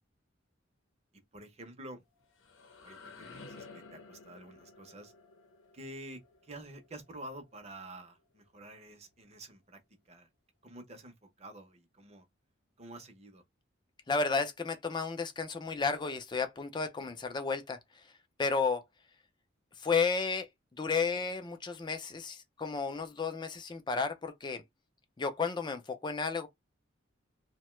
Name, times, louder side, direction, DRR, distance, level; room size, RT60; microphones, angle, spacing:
voice 1, 1.3-2.0 2.8-5.1 5.7-9.8 10.1-10.3 10.6-12.2 12.8-13.4, right 1 dB, 35° right, 0.7 m, -49 dB
sound 1, 2.0-7.8, left 3 dB, 85° left, 0.7 m, -53 dB
voice 2, 14.1-17.8 18.4-18.8 19.8-20.5 20.8-24.6 25.2-26.5, left 4 dB, 25° left, 0.4 m, -32 dB
2.7 x 2.2 x 3.0 m
head